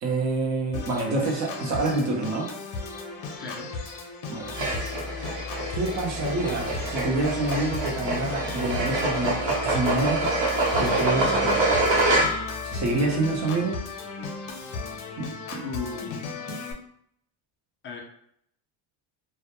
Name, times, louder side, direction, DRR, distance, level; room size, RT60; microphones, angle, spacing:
voice 1, 0.0-2.5 4.3-4.5 5.7-10.2 10.8-11.8 12.6-13.8 15.2-15.7 16.5-16.6, right 2 dB, 40° right, 0 dB, 0.6 m, -27 dB
Organ, 0.7-16.7, left 4 dB, 70° left, 0.6 m, -36 dB
voice 2, 3.4-3.7 15.6-16.3 17.8-18.0, left 5 dB, 30° left, 0 dB, 0.4 m, -35 dB
sound 1, 4.5-12.6, right 2 dB, 65° right, 0.8 m, -26 dB
2.1 x 2.1 x 2.8 m, 0.69 s
cardioid pair, 160°, 45 cm